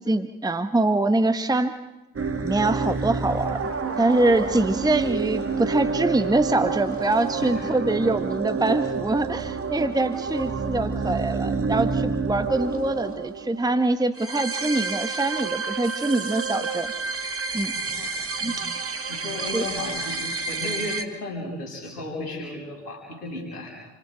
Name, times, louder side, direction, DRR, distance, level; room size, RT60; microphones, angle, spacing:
voice 1, 0.0-1.7 2.4-3.7 4.0-16.9 17.5-17.7 18.4-18.5 19.5-19.6, right 2 dB, 10° right, 9 dB, 1.2 m, -24 dB
sound 1, 2.2-21.0, right 4 dB, 30° right, 2.0 m, -29 dB
voice 2, 17.7-18.1 18.4-18.6 19.1-23.7, left 2 dB, 80° left, -2 dB, 6.3 m, -34 dB
29.0 x 25.0 x 4.6 m, 1.0 s
figure-of-eight pair, 45°, 46 cm